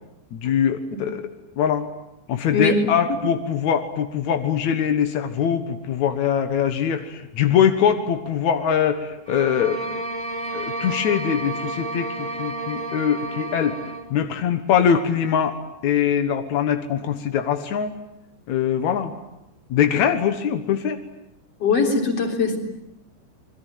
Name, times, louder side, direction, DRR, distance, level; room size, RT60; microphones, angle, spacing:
voice 1, 0.3-1.2 1.6-1.9 2.3-9.9 10.5-13.8 14.1-15.6 15.8-18.0 18.5-19.1 19.7-21.0, left 8 dB, 70° left, 7 dB, 1.7 m, -22 dB
voice 2, 2.5-2.9 21.6-22.6, left 4 dB, 35° left, 3 dB, 4.4 m, -20 dB
sound 1, 9.2-14.1, right 2 dB, 10° right, 3.0 m, -31 dB
28.0 x 21.5 x 9.2 m, 0.86 s
omnidirectional pair, 5.4 m